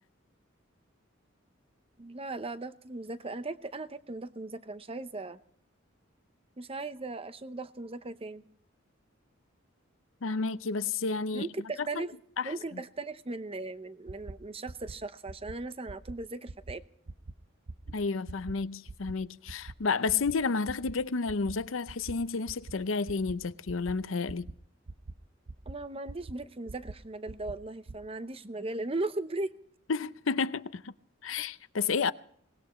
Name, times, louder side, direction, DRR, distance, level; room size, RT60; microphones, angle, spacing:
voice 1, 2.0-5.4 6.6-8.4 11.3-12.2 12.4-16.8 25.7-29.5, right 2 dB, 30° right, 0.8 m, -38 dB
voice 2, 10.2-11.5 11.8-11.9 12.4-12.5 17.9-24.5 29.9-30.8 31.2-32.1, left 4 dB, 75° left, 0.7 m, -31 dB
sound 1, 14.1-14.3 14.7-14.9 15.3-15.5 15.9-16.1 16.5-16.7 17.1-17.3 17.7-17.9 18.3-18.5 18.9-19.1 19.5-19.7 20.1-20.3 20.7-20.9 21.3-21.5 21.9-22.1 22.5-22.7 23.1-23.3 23.7-23.9 24.3-24.5 24.9-25.1 25.5-25.7 26.1-26.3 26.7-26.9 27.3-27.5 27.9-28.0, right 3 dB, 90° right, 0.7 m, -42 dB
23.5 x 19.5 x 3.1 m
head